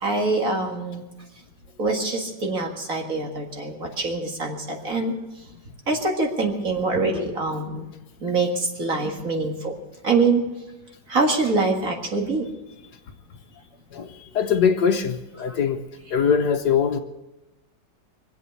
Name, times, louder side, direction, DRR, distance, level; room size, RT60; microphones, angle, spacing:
voice 1, 0.0-1.0 1.8-5.2 5.9-7.9 8.2-9.8 10.0-10.5 11.1-12.5, right 3 dB, 50° right, 1 dB, 2.3 m, -24 dB
voice 2, 13.9-15.8 16.1-17.0, left 7 dB, 65° left, 6 dB, 1.5 m, -22 dB
24.5 x 8.3 x 6.9 m, 1.0 s
omnidirectional pair, 2.0 m